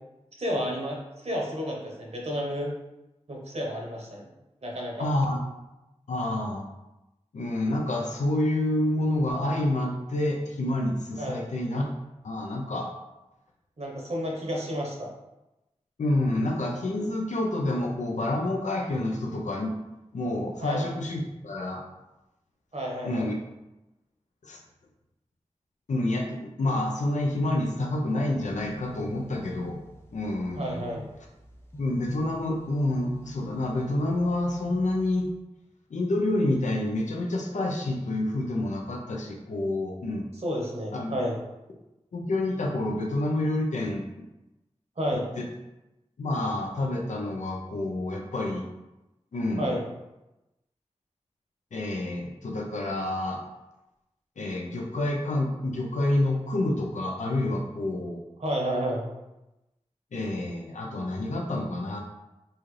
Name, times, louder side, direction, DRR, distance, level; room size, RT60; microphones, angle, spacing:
voice 1, 0.4-2.7 3.3-4.3 4.6-5.1 11.2-11.5 13.8-15.1 20.6-20.9 22.7-23.3 30.6-31.0 40.4-41.4 45.0-45.3 49.6-49.8 58.4-59.0, equal, 65° right, -2 dB, 1.0 m, -31 dB
voice 2, 5.0-5.4 6.1-6.7 7.3-11.8 12.2-12.9 16.0-19.7 20.1-21.8 23.0-23.4 24.4-24.6 25.9-29.8 30.1-30.8 31.8-35.3 35.9-40.3 40.9-41.1 42.1-44.1 45.4-45.5 46.2-48.6 49.3-49.7 51.7-53.4 54.4-58.2 60.1-62.0, left 1 dB, 90° left, 0 dB, 0.5 m, -28 dB
sound 1, 28.4-35.3, equal, 20° left, 0.6 m, -46 dB
4.1 x 2.4 x 3.2 m, 0.97 s
wide cardioid pair, 50°, 12 cm